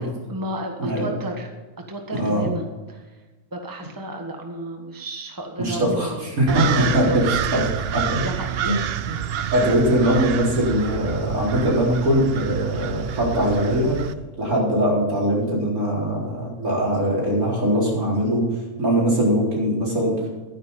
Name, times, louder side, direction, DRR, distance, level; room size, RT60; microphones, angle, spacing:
voice 1, 0.0-1.5 1.9-3.0 3.5-7.2 8.2-8.8 9.4-9.7, right 1 dB, 15° right, 3 dB, 1.5 m, -32 dB
voice 2, 0.8-1.1 2.1-2.5 5.6-7.2 7.5-8.3 8.6-8.8 9.5-14.0 14.4-18.5 18.8-20.3, equal, 80° right, -4 dB, 4.7 m, -21 dB
sound 1, 6.5-14.1, right 9 dB, 60° right, 0.7 m, -28 dB
12.0 x 10.0 x 5.5 m, 1.2 s
omnidirectional pair, 1.5 m